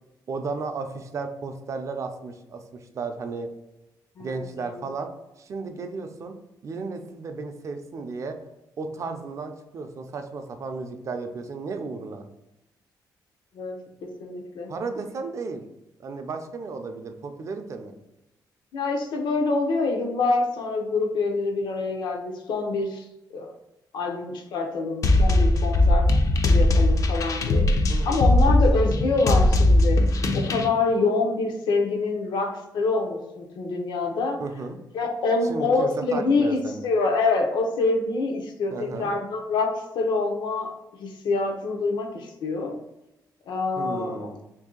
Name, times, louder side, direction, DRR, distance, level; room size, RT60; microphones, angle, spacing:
voice 1, 0.3-3.5 4.2-5.1 5.4-6.4 6.6-8.4 8.8-12.3 14.7-15.6 16.0-17.9 27.9-28.5 34.4-34.8 35.5-36.9 38.7-39.1 43.8-44.4, right 4 dB, 40° right, 6 dB, 0.4 m, -34 dB
voice 2, 13.5-14.7 18.7-23.1 23.3-23.5 23.9-26.1 26.4-34.4 34.9-40.7 41.0-42.8 43.5-44.3, left 3 dB, 80° left, 3 dB, 0.6 m, -26 dB
sound 1, 25.0-30.7, left 1 dB, 45° left, 0.4 m, -19 dB
3.1 x 2.6 x 3.7 m, 0.94 s
wide cardioid pair, 150°, 8 cm